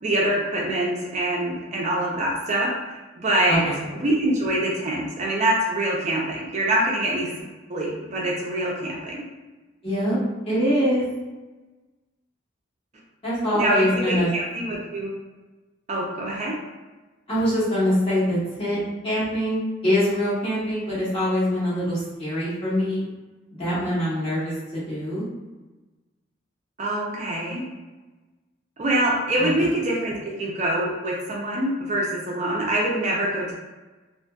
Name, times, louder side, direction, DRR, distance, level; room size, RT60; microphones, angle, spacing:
voice 1, 0.0-3.6 4.0-7.3 7.7-9.2 13.5-15.1 15.9-16.5 26.8-27.6 28.8-33.5, right 1 dB, 40° right, -3 dB, 0.4 m, -25 dB
voice 2, 9.8-10.2 10.4-11.0 13.2-14.3 17.3-18.8 19.0-23.1 23.5-25.2 29.4-29.7, equal, 30° left, -10 dB, 1.2 m, -24 dB
2.6 x 2.5 x 2.3 m, 1.2 s
head